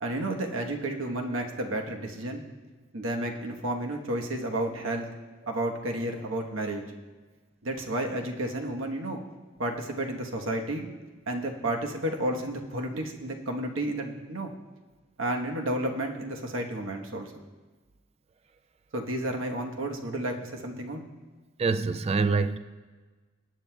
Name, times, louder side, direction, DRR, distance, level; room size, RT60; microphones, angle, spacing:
voice 1, 0.0-2.4 2.9-5.1 5.5-6.8 7.6-9.2 9.6-10.9 11.3-14.5 15.2-17.3 18.9-21.0, right 1 dB, 80° right, 2 dB, 1.2 m, -31 dB
voice 2, 21.6-22.6, right 4 dB, 30° right, 12 dB, 0.3 m, -25 dB
21.0 x 9.3 x 2.3 m, 1.3 s
head